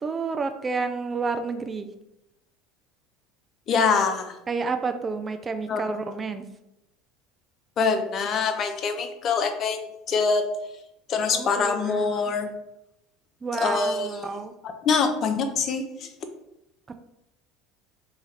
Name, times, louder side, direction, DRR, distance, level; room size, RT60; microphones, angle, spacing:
voice 1, 0.0-1.9 4.5-6.5 11.3-12.3 13.4-14.5 16.9-17.0, right 4 dB, 25° right, 8 dB, 0.3 m, -30 dB
voice 2, 3.7-4.4 5.7-5.8 7.8-10.5 11.1-12.5 13.6-14.4 14.6-16.1, left 5 dB, 45° left, 7 dB, 0.5 m, -24 dB
3.2 x 2.3 x 4.2 m, 0.87 s
hypercardioid pair, 75°, 0 cm